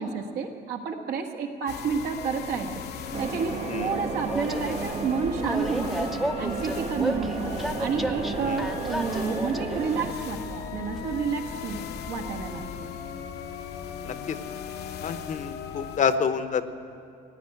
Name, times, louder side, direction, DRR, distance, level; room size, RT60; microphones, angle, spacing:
voice 1, 0.0-2.8 3.2-12.7, right 5 dB, 75° right, 3 dB, 1.5 m, -30 dB
sound 1, 1.7-16.0, left 7 dB, 75° left, 1.0 m, -37 dB
sound 2, 3.1-10.1, right 6 dB, 40° right, 0.6 m, -34 dB
Train, 4.2-12.9, equal, ahead, 0.6 m, -35 dB
voice 2, 14.0-14.4 15.0-16.7, left 6 dB, 45° left, 11 dB, 0.8 m, -28 dB
15.5 x 9.6 x 9.1 m, 2.5 s
cardioid pair, 110°, 17 cm